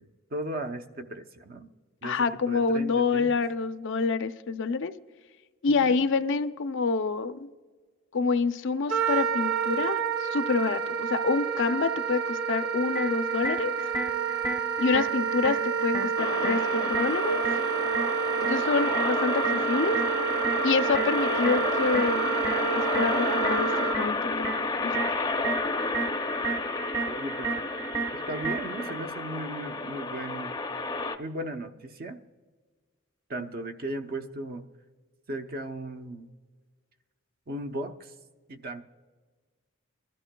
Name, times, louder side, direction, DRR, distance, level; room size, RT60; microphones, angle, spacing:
voice 1, 0.0-1.7 2.0-3.4 5.8-5.9 27.1-27.5 28.1-30.6 31.2-32.2 33.3-34.7 35.3-36.3 37.5-38.1 38.5-38.8, right 1 dB, 45° right, 7 dB, 0.7 m, -36 dB
voice 2, 2.0-4.9 5.6-7.5 8.1-13.7 14.8-17.4 18.5-19.4 19.7-20.0 20.6-22.4 22.9-24.5 24.8-25.0, left 4 dB, 60° left, 11 dB, 0.5 m, -27 dB
Wind instrument woodwind instrument, 8.9-24.0, right 7 dB, 65° right, 1.5 m, -29 dB
sound 1, 12.9-28.9, right 4 dB, 20° right, 0.9 m, -35 dB
sound 2, 16.2-31.2, left 3 dB, 20° left, 0.6 m, -31 dB
23.0 x 13.0 x 2.2 m, 1.4 s
head